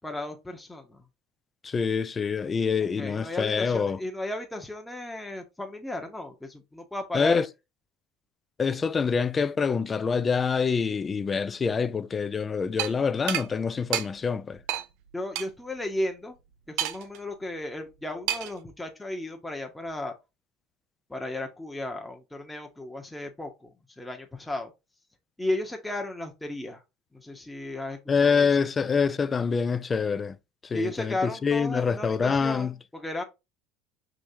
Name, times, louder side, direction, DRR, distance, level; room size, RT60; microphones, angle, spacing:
voice 1, 0.0-1.0 3.0-7.4 15.1-16.4 16.7-20.1 21.1-24.7 25.4-26.8 27.1-28.7 30.7-33.2, left 1 dB, 10° left, 1.0 m, -34 dB
voice 2, 1.6-4.0 7.1-7.5 8.6-14.6 28.1-30.4 30.6-32.7, left 5 dB, 30° left, 0.4 m, -26 dB
sound 1, 12.8-12.9 13.3-13.5 13.9-14.1 14.7-14.9 15.4-15.5 16.8-17.2 18.3-18.6, right 12 dB, 70° right, 0.5 m, -28 dB
5.0 x 3.1 x 2.8 m
hypercardioid pair, 85°, 0 cm